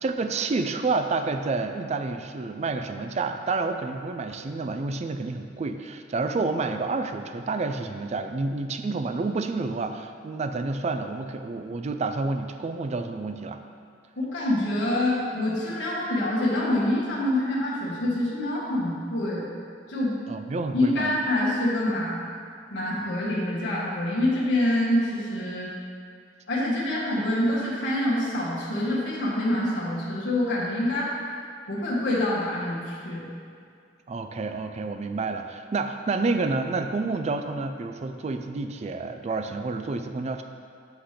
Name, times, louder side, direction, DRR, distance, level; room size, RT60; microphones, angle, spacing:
voice 1, 0.0-13.6 20.3-21.2 34.1-40.4, right 3 dB, 35° right, 7 dB, 0.4 m, -29 dB
voice 2, 14.2-19.5 19.9-20.1 20.7-22.2 22.7-25.7 26.5-31.1 31.7-33.2, left 1 dB, 70° left, -7 dB, 1.4 m, -26 dB
8.0 x 3.3 x 5.7 m, 2.3 s
head